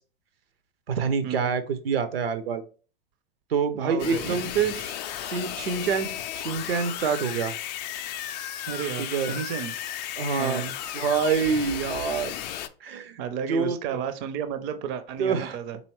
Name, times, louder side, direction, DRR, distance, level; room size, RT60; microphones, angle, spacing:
voice 1, 0.9-2.6 3.5-5.0 5.2-7.5 9.0-9.3 10.2-10.6 10.9-12.3 12.8-13.2 13.5-14.0 15.2-15.6, right 6 dB, 75° right, 11 dB, 0.6 m, -26 dB
voice 2, 3.8-4.4 8.6-9.7 10.4-10.7 13.2-15.8, right 8 dB, 35° right, 11 dB, 0.5 m, -32 dB
sound 1, 4.0-12.7, left 11 dB, 45° left, 0.4 m, -34 dB
4.1 x 2.8 x 3.0 m, 0.37 s
figure-of-eight pair, 95°, 30 cm